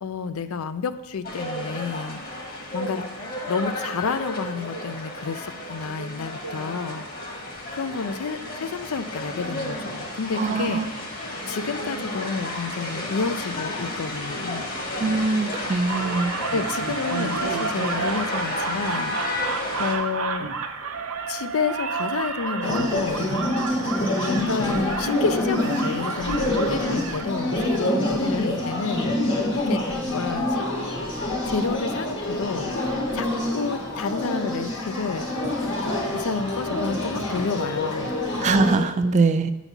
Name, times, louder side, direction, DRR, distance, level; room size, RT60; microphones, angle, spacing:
voice 1, 0.0-2.2 2.7-3.0 3.5-7.1 7.7-10.8 11.5-14.7 16.1-16.2 16.5-20.5 21.3-23.2 24.2-29.2 29.7-30.7 31.5-32.7 33.1-35.3 36.1-38.1, left 5 dB, 80° left, 12 dB, 0.5 m, -30 dB
sound 1, 1.2-20.0, left 1 dB, 40° left, 1.4 m, -32 dB
voice 2, 10.4-10.9 15.0-16.3 38.4-39.5, right 3 dB, 35° right, 11 dB, 0.3 m, -22 dB
sound 2, 15.9-27.8, right 5 dB, 75° right, 0.7 m, -31 dB
sound 3, 22.6-38.8, left 1 dB, 60° left, 1.5 m, -26 dB
9.0 x 4.1 x 5.9 m, 1.1 s
head